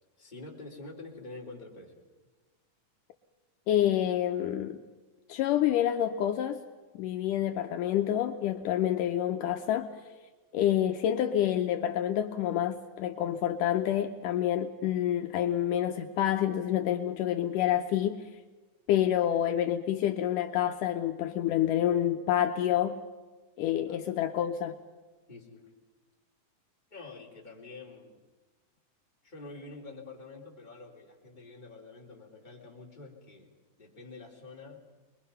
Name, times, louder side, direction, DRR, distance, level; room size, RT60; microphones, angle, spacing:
voice 1, 0.2-2.0 23.9-24.0 25.3-25.7 26.9-28.2 29.2-33.5 33.8-34.8, left 3 dB, 15° left, -2 dB, 3.2 m, -47 dB
voice 2, 3.7-4.8 5.3-6.6 7.0-9.9 10.5-18.3 18.9-23.0 23.6-24.7, left 11 dB, 75° left, 5 dB, 2.3 m, -28 dB
26.0 x 21.5 x 5.7 m, 1.3 s
omnidirectional pair, 3.9 m